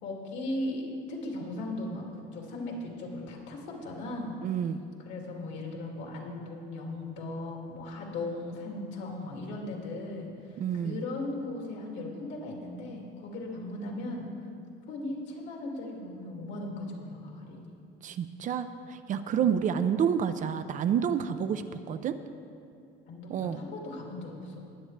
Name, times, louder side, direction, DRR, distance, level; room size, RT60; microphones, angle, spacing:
voice 1, 0.0-4.4 5.0-14.3 14.9-17.7 19.4-19.5 23.1-24.6, left 2 dB, 65° left, -1 dB, 2.3 m, -37 dB
voice 2, 4.4-4.8 10.6-11.0 18.0-22.2 23.3-23.6, right 8 dB, 40° right, 10 dB, 0.5 m, -29 dB
20.5 x 7.9 x 3.2 m, 2.5 s
cardioid pair, 135°, 20 cm